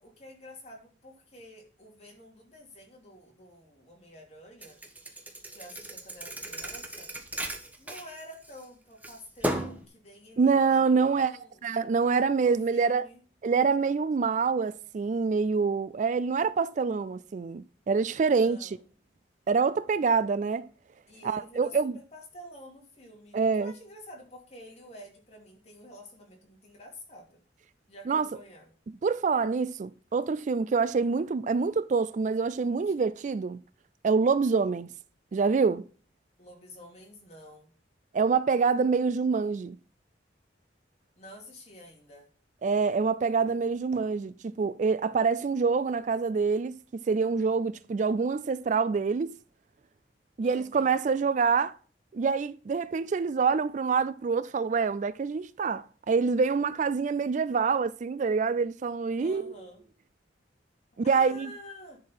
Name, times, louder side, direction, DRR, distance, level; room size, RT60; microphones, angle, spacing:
voice 1, 0.0-4.8 5.5-7.1 7.8-11.6 12.3-13.2 18.2-18.8 21.1-27.4 27.9-28.7 36.4-37.7 41.2-42.3 50.4-51.0 59.2-59.8 61.0-62.0, equal, 35° left, 2.8 m, -49 dB
Thump thud, 4.6-8.6 9.0-9.8, right 1 dB, 10° right, 1.1 m, -35 dB
voice 2, 10.4-13.1 13.4-18.8 19.5-20.7 21.2-21.9 23.3-23.7 28.1-28.3 29.0-33.6 34.0-34.9 35.3-35.8 38.1-39.8 42.6-49.4 50.4-51.8 52.1-59.5 61.0-61.5, right 5 dB, 45° right, 0.3 m, -26 dB
10.5 x 4.7 x 5.6 m
head